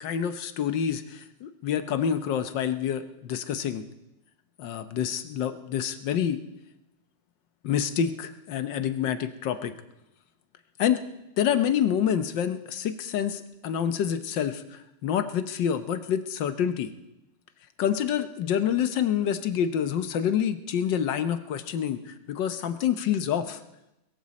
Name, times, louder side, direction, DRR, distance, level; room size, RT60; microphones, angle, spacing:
voice 1, 0.0-3.8 4.6-6.4 7.6-9.7 10.8-11.1 11.4-16.9 17.8-23.6, left 9 dB, 90° left, 10 dB, 1.7 m, -27 dB
22.0 x 14.5 x 4.2 m, 0.91 s
omnidirectional pair, 1.9 m